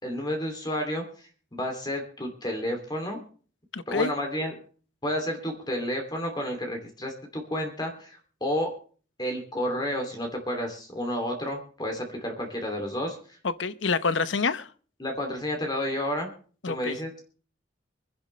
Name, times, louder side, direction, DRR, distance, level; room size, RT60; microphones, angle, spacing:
voice 1, 0.0-3.2 3.9-4.6 5.0-8.7 9.2-13.2 15.0-16.3 16.7-17.1, equal, 20° left, 2.7 m, -31 dB
voice 2, 3.7-4.1 13.4-14.7 16.6-17.0, left 4 dB, 70° left, 0.8 m, -27 dB
25.5 x 10.5 x 3.2 m
head